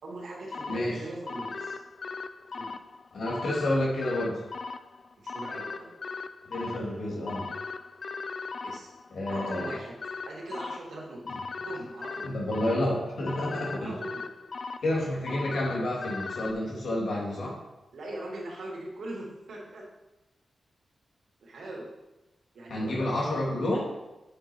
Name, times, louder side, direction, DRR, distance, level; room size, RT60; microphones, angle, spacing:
voice 1, 0.0-1.8 2.5-2.7 4.1-4.3 5.2-5.9 8.6-8.9 9.3-9.9 10.3-11.2 11.6-12.4 13.8-14.3 17.9-19.8 21.4-21.9 22.5-23.1, right 1 dB, 80° right, -3 dB, 2.8 m, -40 dB
sound 1, 0.5-16.5, left 4 dB, 55° left, 0.4 m, -39 dB
voice 2, 3.1-4.4 6.5-7.5 9.1-9.7 11.3-11.4 12.2-14.0 14.8-17.6 22.7-23.9, left 1 dB, 75° left, -3 dB, 3.0 m, -29 dB
8.7 x 7.0 x 4.6 m, 1.0 s
wide cardioid pair, 120°, 0 cm